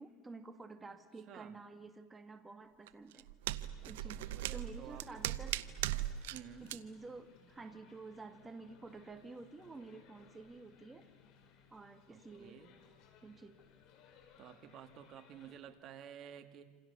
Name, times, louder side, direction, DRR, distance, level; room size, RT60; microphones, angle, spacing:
voice 1, 0.0-3.3 3.8-5.6 6.6-11.1 11.7-12.6 13.2-13.6, right 3 dB, 15° right, 7 dB, 2.2 m, -51 dB
voice 2, 1.3-1.6 4.0-5.2 6.3-6.7 12.1-12.8 14.4-16.6, right 9 dB, 45° right, 7 dB, 2.2 m, -52 dB
sound 1, 2.9-6.4 6.7-6.8, right 14 dB, 90° right, 0.9 m, -39 dB
sound 2, 3.7-15.6, left 7 dB, 55° left, 4.5 m, -64 dB
27.5 x 27.5 x 7.1 m, 1.4 s
supercardioid pair, 120°, 0 cm